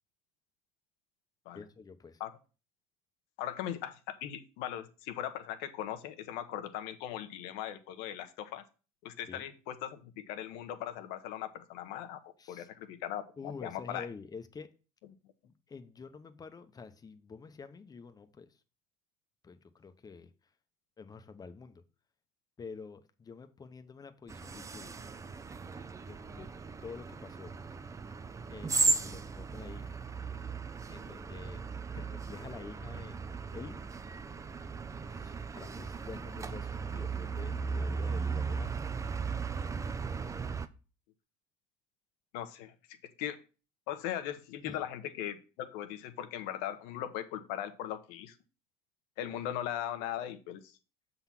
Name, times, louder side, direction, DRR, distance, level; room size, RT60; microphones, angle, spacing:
voice 1, 1.5-2.2 9.3-9.5 12.4-12.7 13.4-14.7 15.4-18.5 19.4-20.3 21.0-21.8 22.6-25.0 25.9-26.5 26.8-27.6 28.5-30.0 30.9-33.8 35.1-38.7 44.6-44.8, left 5 dB, 25° left, 0.8 m, -48 dB
voice 2, 3.4-8.6 9.0-14.1 42.3-42.7 43.2-43.4 43.9-48.4 49.2-50.7, left 11 dB, 85° left, 0.9 m, -39 dB
sound 1, 24.3-40.7, right 4 dB, 20° right, 0.5 m, -36 dB
7.0 x 3.9 x 5.9 m
supercardioid pair, 105°, 15 cm